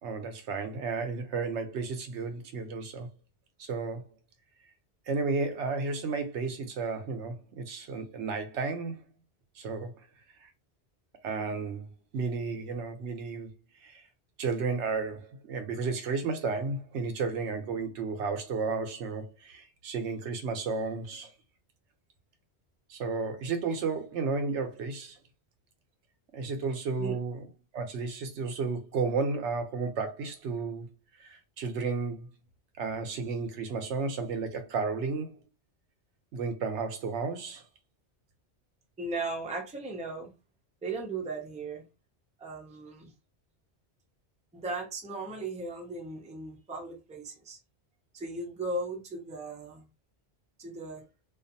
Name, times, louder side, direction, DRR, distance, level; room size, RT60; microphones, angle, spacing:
voice 1, 0.0-3.1 3.6-4.0 5.1-9.0 9.6-9.9 10.4-10.5 11.2-13.5 13.8-14.0 14.4-21.3 22.9-25.2 26.3-27.5 27.7-30.9 31.2-32.3 32.8-35.4 36.3-37.6, right 4 dB, 90° right, 0.9 m, -33 dB
voice 2, 39.0-40.3 40.8-41.8 42.4-43.1 44.5-47.6 48.1-49.8 50.6-51.0, right 2 dB, 10° right, 0.4 m, -37 dB
2.5 x 2.3 x 2.6 m
omnidirectional pair, 1.1 m